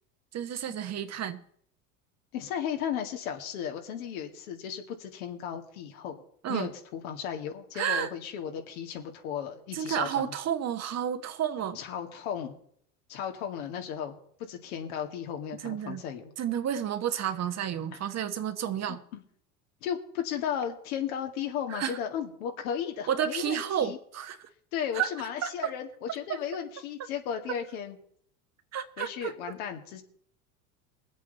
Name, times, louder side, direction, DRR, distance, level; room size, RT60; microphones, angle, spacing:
voice 1, 0.3-1.4 6.4-6.7 7.7-8.1 9.7-11.8 15.6-16.0 16.4-19.0 21.7-22.0 23.1-24.4 24.9-25.1 25.4-25.7 26.3-26.4 28.7-29.3, right 9 dB, 35° right, 1.3 m, -31 dB
voice 2, 2.3-6.2 6.5-10.3 11.7-12.5 13.1-14.2 14.5-16.3 18.7-19.2 19.8-24.0 24.7-28.0 29.0-30.0, left 8 dB, 70° left, 2.5 m, -35 dB
22.0 x 8.2 x 4.2 m
hypercardioid pair, 85°, 44 cm